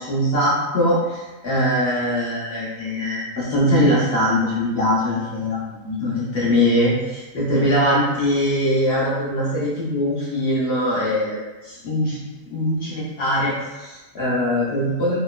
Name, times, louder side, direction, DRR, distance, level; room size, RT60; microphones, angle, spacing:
voice 1, 0.0-12.2 12.5-15.2, equal, 50° left, -8 dB, 0.9 m, -22 dB
3.0 x 2.0 x 2.3 m, 1.1 s
omnidirectional pair, 1.7 m